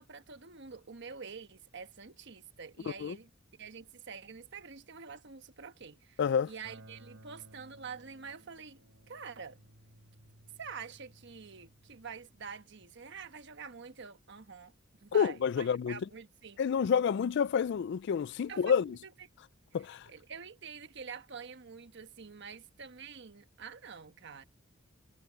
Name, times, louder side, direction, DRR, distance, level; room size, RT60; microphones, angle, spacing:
voice 1, 0.0-3.3 3.6-6.2 6.4-8.8 9.1-9.6 10.6-14.7 15.0-16.6 18.5-19.3 20.1-24.4, right 5 dB, 60° right, 1.2 m, -47 dB
voice 2, 6.2-6.5 15.1-16.0 16.6-19.0 19.7-20.1, left 7 dB, 60° left, 0.3 m, -29 dB
Guitar, 6.6-13.4, right 1 dB, 85° right, 3.3 m, -59 dB
head